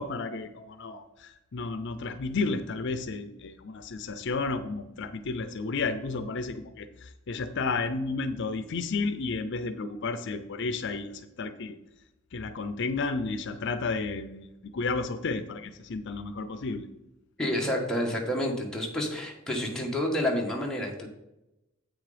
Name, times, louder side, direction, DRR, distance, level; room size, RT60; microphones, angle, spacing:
voice 1, 0.0-11.8 12.3-16.9, left 3 dB, 60° left, 10 dB, 0.5 m, -32 dB
voice 2, 17.4-21.1, left 1 dB, 5° left, -2 dB, 1.5 m, -29 dB
8.1 x 6.3 x 5.0 m, 0.91 s
head